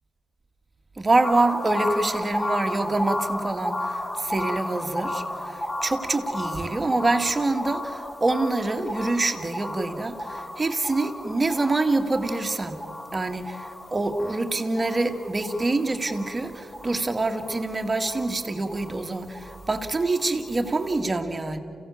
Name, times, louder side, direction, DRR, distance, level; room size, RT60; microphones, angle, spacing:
voice 1, 1.0-12.8 13.1-21.6, right 2 dB, 35° right, 5 dB, 2.2 m, -26 dB
sound 1, 1.2-21.0, left 1 dB, 25° left, 2.3 m, -34 dB
28.5 x 16.5 x 7.2 m, 2.6 s
supercardioid pair, 50°, 0 cm